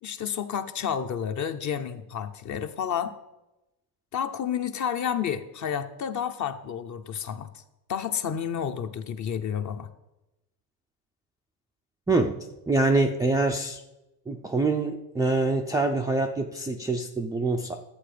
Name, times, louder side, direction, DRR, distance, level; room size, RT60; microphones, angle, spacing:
voice 1, 0.0-3.2 4.1-7.6 7.9-9.9, left 8 dB, 35° left, 9 dB, 0.9 m, -30 dB
voice 2, 12.1-12.4 12.7-13.8 14.3-17.7, right 2 dB, 10° right, 2 dB, 0.3 m, -25 dB
11.5 x 7.7 x 5.1 m, 0.96 s
cardioid pair, 125°, 49 cm